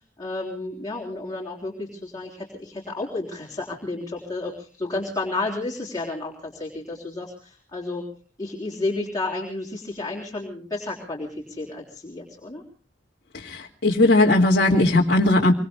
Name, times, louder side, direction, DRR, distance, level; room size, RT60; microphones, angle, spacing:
voice 1, 0.2-8.1 8.4-12.6, left 2 dB, 20° left, -2 dB, 3.4 m, -31 dB
voice 2, 13.3-15.5, left 2 dB, 55° left, -2 dB, 2.0 m, -18 dB
26.5 x 23.5 x 2.2 m, 0.39 s
head